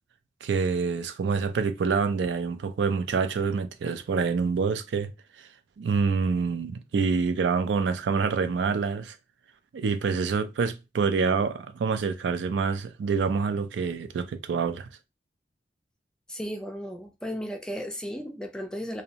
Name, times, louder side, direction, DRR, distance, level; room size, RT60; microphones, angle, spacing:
voice 1, 0.4-5.1 5.4-5.5 5.8-9.2 9.7-14.9, right 5 dB, 85° right, 0.4 m, -26 dB
voice 2, 16.3-19.0, equal, 5° left, 0.3 m, -35 dB
2.6 x 2.0 x 2.8 m
head